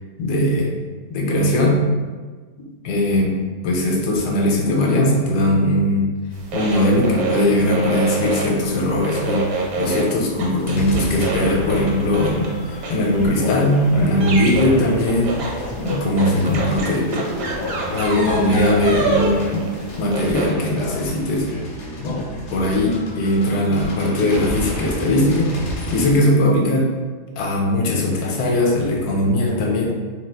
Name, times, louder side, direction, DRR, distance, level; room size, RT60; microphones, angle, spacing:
voice 1, 0.2-0.7 1.1-1.8 2.8-3.4 3.6-6.1 6.5-12.5 12.9-17.2 17.9-19.7 20.0-21.5 22.0-22.2 22.5-26.9 27.4-29.9, left 1 dB, 75° left, -1 dB, 1.1 m, -19 dB
sound 1, 6.3-20.5, right 3 dB, 65° right, 1.1 m, -28 dB
sound 2, 10.8-26.2, left 1 dB, 60° left, 0.8 m, -31 dB
2.8 x 2.3 x 3.3 m, 1.4 s
omnidirectional pair, 1.8 m